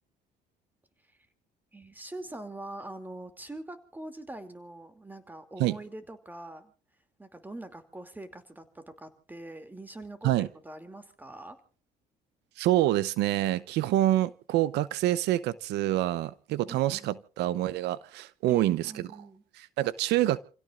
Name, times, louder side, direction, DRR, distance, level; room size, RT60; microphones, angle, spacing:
voice 1, 1.7-6.7 7.2-11.6 16.7-17.2 18.5-19.4, right 2 dB, 10° right, 2.7 m, -43 dB
voice 2, 12.6-19.0 19.6-20.4, right 14 dB, 85° right, 0.8 m, -26 dB
29.5 x 16.5 x 2.5 m
cardioid pair, 110°, 17 cm